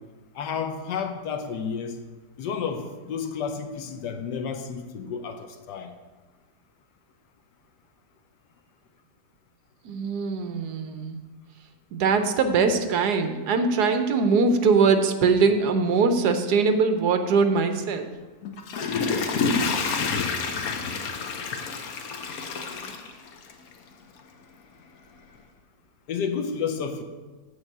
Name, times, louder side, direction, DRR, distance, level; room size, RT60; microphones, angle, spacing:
voice 1, 0.3-2.0 2.4-5.9 26.1-27.0, left 6 dB, 85° left, 7 dB, 1.4 m, -31 dB
voice 2, 9.8-11.2 11.9-18.1, right 4 dB, 75° right, 7 dB, 1.3 m, -22 dB
Water / Toilet flush, 18.4-23.7 24.2-24.3, left 4 dB, 65° left, 1.2 m, -28 dB
8.1 x 4.9 x 7.5 m, 1.3 s
omnidirectional pair, 1.8 m